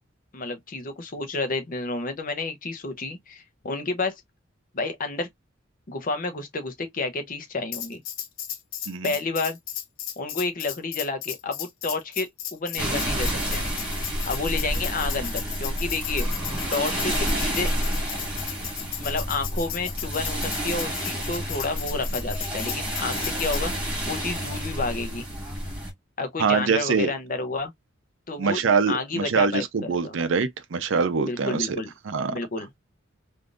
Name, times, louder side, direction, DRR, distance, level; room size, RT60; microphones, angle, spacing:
voice 1, 0.3-4.1 4.7-5.3 5.9-8.0 9.0-9.6 10.2-13.7 14.3-16.3 16.7-17.7 19.0-23.7 24.1-25.2 26.2-27.7 28.3-28.6 28.9-30.2 31.2-31.9 32.3-32.7, left 3 dB, 45° left, 0.7 m, -30 dB
Tambourine, 7.7-23.6, left 10 dB, 90° left, 0.6 m, -35 dB
sound 1, 12.8-25.9, equal, 5° right, 1.8 m, -29 dB
voice 2, 26.4-27.1 28.4-31.8 32.1-32.3, right 5 dB, 70° right, 0.5 m, -24 dB
3.5 x 2.6 x 2.4 m
head